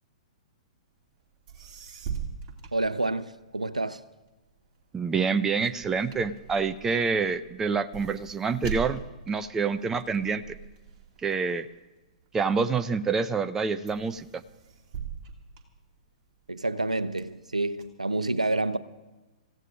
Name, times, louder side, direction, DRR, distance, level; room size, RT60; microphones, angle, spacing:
sound 1, 1.2-1.3 1.5-3.6 4.0-12.7 13.2-13.6 13.9-16.4 16.8-17.8, right 7 dB, 30° right, 2.4 m, -41 dB
voice 1, 2.7-4.0 16.5-18.8, right 2 dB, 85° right, 0.7 m, -28 dB
voice 2, 4.9-10.6 11.2-11.7 12.3-14.4, right 5 dB, 10° right, 0.5 m, -27 dB
28.5 x 15.5 x 2.5 m
figure-of-eight pair, 110°, 4 cm